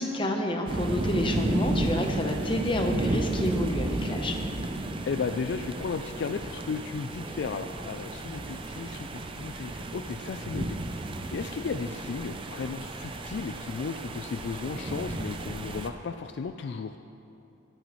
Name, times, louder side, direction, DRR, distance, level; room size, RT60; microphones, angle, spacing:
voice 1, 0.0-4.3, left 1 dB, 25° left, 3 dB, 0.8 m, -29 dB
sound 1, 0.7-15.9, right 1 dB, 25° right, 0.5 m, -33 dB
voice 2, 5.0-10.8 11.3-17.0, left 5 dB, 55° left, 8 dB, 0.3 m, -34 dB
19.5 x 9.1 x 3.1 m, 2.7 s
head